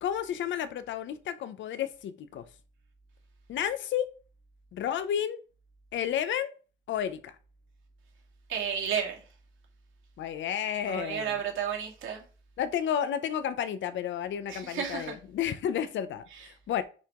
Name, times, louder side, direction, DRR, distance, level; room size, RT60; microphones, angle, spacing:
voice 1, 0.0-2.4 3.5-4.1 4.7-5.4 5.9-6.5 6.9-7.3 10.2-11.3 12.6-16.8, left 9 dB, 70° left, 0.7 m, -31 dB
voice 2, 8.5-9.2 10.9-12.2 14.5-15.1, right 7 dB, 75° right, 2.1 m, -32 dB
6.5 x 4.7 x 3.7 m
cardioid pair, 155°, 20 cm